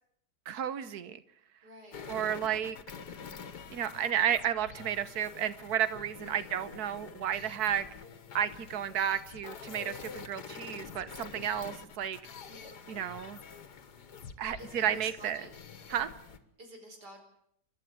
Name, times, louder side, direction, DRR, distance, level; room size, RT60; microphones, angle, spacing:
voice 1, 0.5-1.2 2.1-2.8 3.7-7.8 8.3-12.2 12.9-13.4 14.4-15.4 15.9-16.1, right 9 dB, 70° right, 14 dB, 1.6 m, -32 dB
voice 2, 1.6-2.0 6.2-6.6 12.4-12.9 14.6-15.5 16.6-17.2, right 1 dB, 90° right, 3 dB, 5.3 m, -49 dB
sound 1, 1.9-16.4, left 6 dB, 80° left, 2.1 m, -47 dB
29.5 x 12.0 x 8.4 m, 0.71 s
omnidirectional pair, 1.7 m